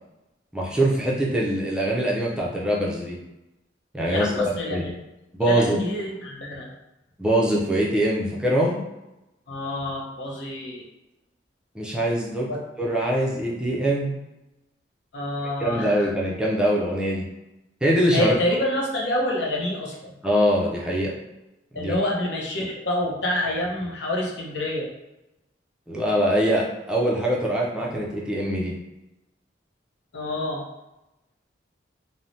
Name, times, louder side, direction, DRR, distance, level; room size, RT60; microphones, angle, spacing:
voice 1, 0.5-3.2 3.9-4.9 5.3-5.8 7.2-8.8 11.7-12.5 12.8-14.1 15.6-17.3 17.8-18.3 20.2-21.1 21.7-22.0 25.9-28.7, right 1 dB, 5° right, -4 dB, 0.4 m, -23 dB
voice 2, 4.1-4.8 5.4-6.7 9.5-10.8 12.5-12.6 15.1-16.1 18.1-20.1 21.7-24.9 30.1-30.6, left 1 dB, 80° left, -1 dB, 0.6 m, -27 dB
3.1 x 2.0 x 2.6 m, 0.96 s
head